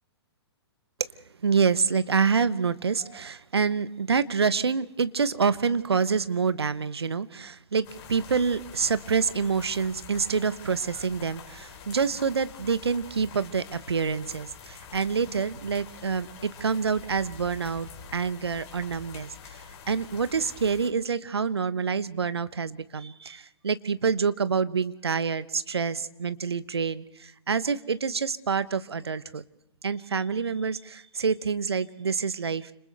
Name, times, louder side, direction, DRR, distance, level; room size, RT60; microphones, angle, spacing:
voice 1, 1.4-19.6 19.9-29.4 29.8-32.7, right 5 dB, 70° right, 15 dB, 1.1 m, -27 dB
sound 1, 7.8-20.9, left 6 dB, 35° left, 4.0 m, -46 dB
30.0 x 27.0 x 3.4 m, 0.82 s
figure-of-eight pair, 115°, 14 cm